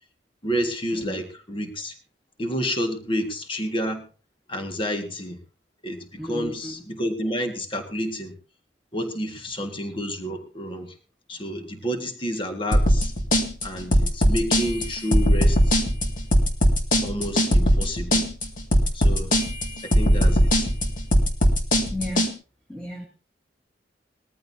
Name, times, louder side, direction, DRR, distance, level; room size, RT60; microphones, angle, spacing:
voice 1, 0.4-2.0 2.4-4.0 4.5-5.4 5.8-8.4 8.9-11.0 11.3-13.1 13.6-15.8 17.0-18.3 18.9-19.3 19.8-20.7, equal, 30° left, 5 dB, 1.8 m, -29 dB
voice 2, 6.2-6.7 21.9-22.3 22.7-23.1, left 1 dB, 5° left, -3 dB, 2.5 m, -33 dB
sound 1, 12.7-22.3, equal, 50° left, 2.2 m, -19 dB
20.5 x 14.0 x 2.8 m, 0.35 s
head